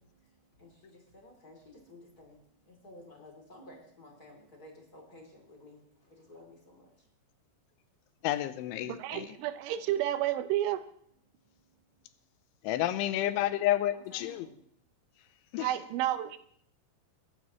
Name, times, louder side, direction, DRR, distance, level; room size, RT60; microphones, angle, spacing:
voice 1, 0.6-2.4 2.7-5.8 6.3-6.8 12.9-13.5 13.9-14.5 15.7-16.1, left 1 dB, 20° left, 0 dB, 3.0 m, -53 dB
voice 2, 8.2-9.3 12.6-14.5 15.5-15.7, left 13 dB, 85° left, 12 dB, 3.0 m, -30 dB
voice 3, 8.9-10.9 15.6-16.4, right 13 dB, 85° right, 11 dB, 3.2 m, -31 dB
20.0 x 15.5 x 3.2 m, 0.66 s
omnidirectional pair, 5.5 m